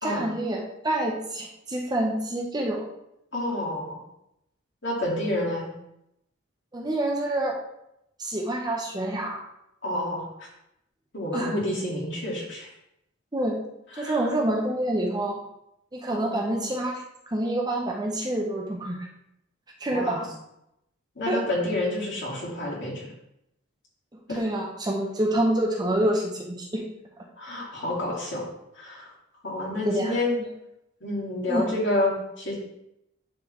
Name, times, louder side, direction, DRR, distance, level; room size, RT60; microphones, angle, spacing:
voice 1, 0.0-2.9 6.7-7.6 8.2-9.4 11.3-11.5 13.3-13.6 14.0-15.4 15.9-19.1 19.8-20.3 21.3-21.4 24.4-26.8 29.8-30.1 31.5-31.6, right 1 dB, 20° right, -1 dB, 0.8 m, -27 dB
voice 2, 3.3-4.0 4.8-5.7 9.8-10.2 11.1-12.7 13.9-14.3 16.1-16.7 19.9-20.2 21.2-23.1 24.3-24.4 27.4-28.4 28.7-29.1 29.4-30.4 31.0-32.5, left 1 dB, 60° left, -5 dB, 2.2 m, -29 dB
10.5 x 3.7 x 3.1 m, 0.83 s
head